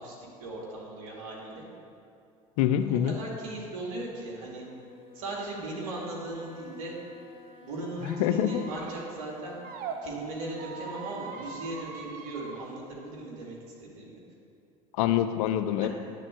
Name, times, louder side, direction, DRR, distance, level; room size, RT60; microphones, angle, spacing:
voice 1, 0.0-1.6 3.0-4.6 5.1-7.0 7.6-9.6 10.0-14.2 15.8-15.9, right 2 dB, 80° right, -4 dB, 2.4 m, -38 dB
voice 2, 2.6-3.2 8.0-8.6 14.9-15.9, left 11 dB, 75° left, 10 dB, 0.5 m, -25 dB
Wind instrument woodwind instrument, 4.5-11.8, left 5 dB, 30° left, 1.5 m, -54 dB
Squeak, 8.0-10.0 10.5-12.6, right 6 dB, 55° right, 1.0 m, -42 dB
9.8 x 4.3 x 7.5 m, 2.5 s
hypercardioid pair, 75°, 18 cm